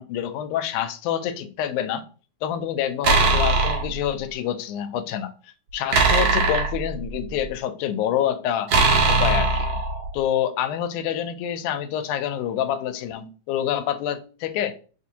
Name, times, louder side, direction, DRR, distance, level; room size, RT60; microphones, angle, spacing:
voice 1, 0.0-2.1 2.4-8.7 9.1-9.7 10.1-14.7, left 10 dB, 90° left, 10 dB, 2.0 m, -27 dB
sound 1, 3.0-3.9 5.9-7.4 8.7-10.1, right 3 dB, 70° right, 1.2 m, -20 dB
6.2 x 2.5 x 2.8 m, 0.37 s
omnidirectional pair, 3.4 m